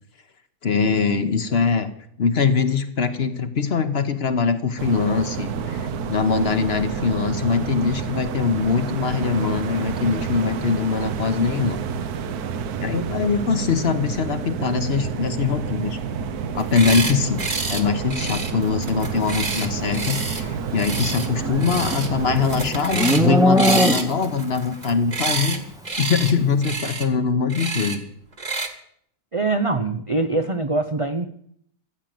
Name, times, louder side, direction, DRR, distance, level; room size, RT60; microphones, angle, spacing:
voice 1, 0.6-1.9 2.2-11.8 12.8-16.0 16.5-17.4 17.7-25.6 26.0-28.0, left 5 dB, 45° left, 10 dB, 1.1 m, -22 dB
sound 1, 4.8-22.7, right 6 dB, 80° right, 1.3 m, -29 dB
sound 2, 16.6-17.1 17.4-17.8 18.1-20.4 20.8-21.3 21.6-22.1 22.4-23.3 23.6-25.6 25.8-26.3 26.6-27.1 27.5-28.0 28.4-28.7, right 3 dB, 30° right, 1.5 m, -28 dB
Livestock farm animals working animals, 21.1-24.4, equal, 5° right, 0.6 m, -21 dB
voice 2, 29.3-31.3, right 3 dB, 45° right, 8 dB, 0.4 m, -23 dB
14.5 x 7.5 x 9.1 m, 0.68 s
omnidirectional pair, 1.6 m